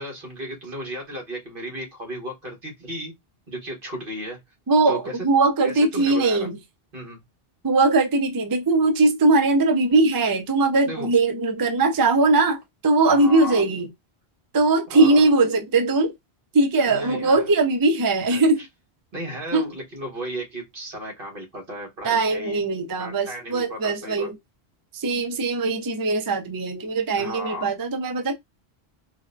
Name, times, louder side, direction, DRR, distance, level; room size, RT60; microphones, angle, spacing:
voice 1, 0.0-3.1 3.5-4.4 4.9-5.2 5.6-6.5 6.9-7.2 10.9-11.1 13.1-13.6 14.9-15.2 16.8-17.4 18.3-18.7 19.1-22.6 23.0-24.3 27.2-27.7, equal, 60° right, 1.5 m, -34 dB
voice 2, 4.7-6.6 7.6-13.9 14.5-16.1 16.5-18.6 19.5-19.7 22.0-24.4 25.0-28.4, right 3 dB, 35° right, 0.3 m, -20 dB
4.0 x 2.1 x 2.5 m
omnidirectional pair, 1.1 m